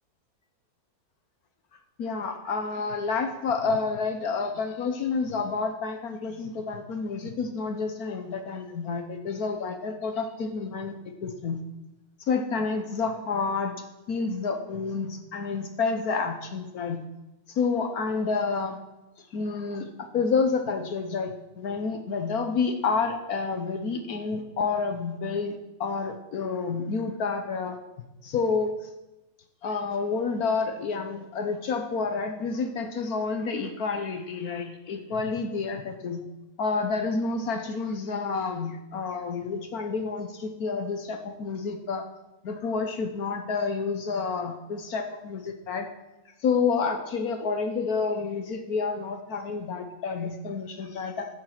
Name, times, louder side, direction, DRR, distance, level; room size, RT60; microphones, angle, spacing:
voice 1, 2.0-10.9 11.2-11.6 12.3-17.0 17.5-18.8 19.3-27.8 28.2-28.7 29.6-36.2 36.6-42.0 42.4-45.9 46.4-51.3, left 4 dB, 70° left, 6 dB, 1.4 m, -29 dB
14.0 x 7.5 x 5.9 m, 1.0 s
omnidirectional pair, 1.7 m